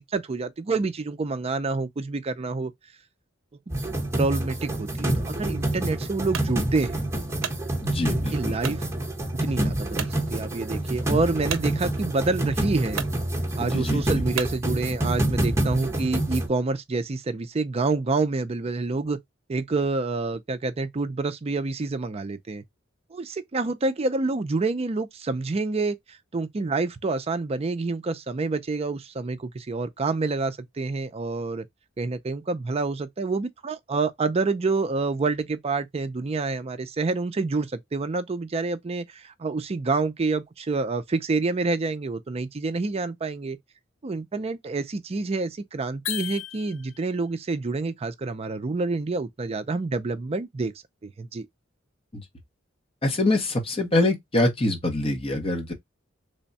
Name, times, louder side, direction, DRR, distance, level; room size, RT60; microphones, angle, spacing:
voice 1, 0.0-2.7 4.2-7.1 8.1-8.8 9.4-13.1 13.6-19.2 19.5-22.6 23.1-31.7 32.0-43.6 44.0-50.7 51.0-51.5, right 3 dB, 30° right, 0.4 m, -27 dB
sound 1, 3.7-16.5, right 1 dB, 15° right, 1.0 m, -27 dB
sound 2, 6.3-6.5 7.1-7.6 8.6-8.8 9.4-9.5 9.9-10.2 11.5-11.7 12.5-12.6 12.9-13.2 14.3-14.6, right 8 dB, 75° right, 0.6 m, -32 dB
voice 2, 7.8-8.5 13.6-14.0 52.1-52.2 53.0-55.7, left 2 dB, 30° left, 0.9 m, -24 dB
sound 3, 46.0-47.2, left 11 dB, 75° left, 0.5 m, -34 dB
3.4 x 2.2 x 3.9 m
head